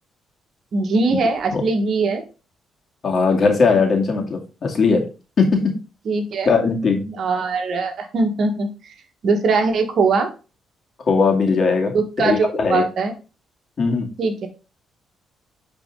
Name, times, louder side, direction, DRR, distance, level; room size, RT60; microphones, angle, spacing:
voice 1, 0.7-2.2 6.0-6.5 7.1-8.9 9.2-10.3 11.9-13.1 14.2-14.5, right 4 dB, 60° right, 5 dB, 1.6 m, -21 dB
voice 2, 3.0-5.0 5.4-5.5 6.5-7.1 11.0-12.8 13.8-14.1, left 4 dB, 50° left, 1 dB, 2.4 m, -19 dB
9.7 x 4.2 x 3.8 m, 0.33 s
cardioid pair, 90°, 0 cm